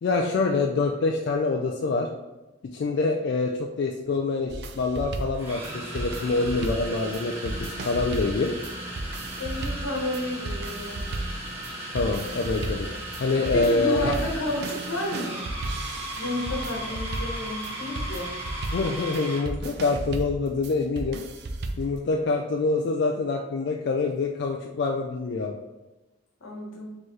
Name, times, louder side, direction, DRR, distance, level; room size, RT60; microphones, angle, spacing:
voice 1, 0.0-2.1 2.7-8.5 11.9-12.9 13.2-14.2 18.7-21.2 21.8-25.6, left 3 dB, 55° left, 1 dB, 0.3 m, -26 dB
sound 1, 4.1-4.2 5.3-19.5, right 1 dB, 15° right, 1.1 m, -36 dB
sound 2, 4.5-22.0, right 2 dB, 55° right, 0.4 m, -35 dB
voice 2, 9.4-11.0 13.5-15.4 16.2-18.3 26.4-26.9, left 1 dB, 85° left, -2 dB, 1.1 m, -31 dB
4.4 x 3.0 x 3.1 m, 1.1 s
head